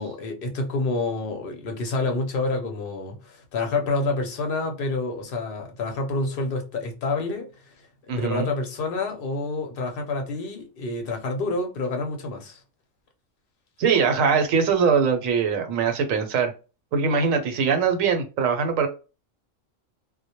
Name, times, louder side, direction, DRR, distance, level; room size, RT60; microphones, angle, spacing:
voice 1, 0.0-7.5 8.1-12.6, left 3 dB, 55° left, 0.7 m, -28 dB
voice 2, 8.1-8.5 13.8-16.5 16.9-18.9, right 6 dB, 80° right, 1.0 m, -22 dB
2.1 x 2.1 x 2.8 m
omnidirectional pair, 1.4 m